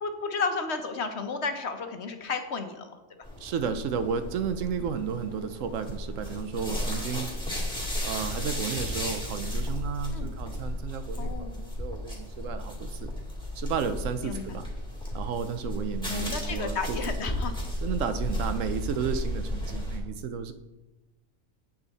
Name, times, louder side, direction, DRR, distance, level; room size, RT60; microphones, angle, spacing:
voice 1, 0.0-3.0 10.1-10.3 11.2-11.6 14.2-14.6 16.1-17.5, left 4 dB, 55° left, 6 dB, 1.1 m, -32 dB
sound 1, 3.2-20.0, left 1 dB, 5° left, 2.2 m, -34 dB
voice 2, 3.4-7.3 8.0-13.1 13.5-14.7 15.1-17.0 17.8-20.5, right 6 dB, 70° right, 10 dB, 1.0 m, -33 dB
8.9 x 8.2 x 4.1 m, 1.1 s
omnidirectional pair, 1.4 m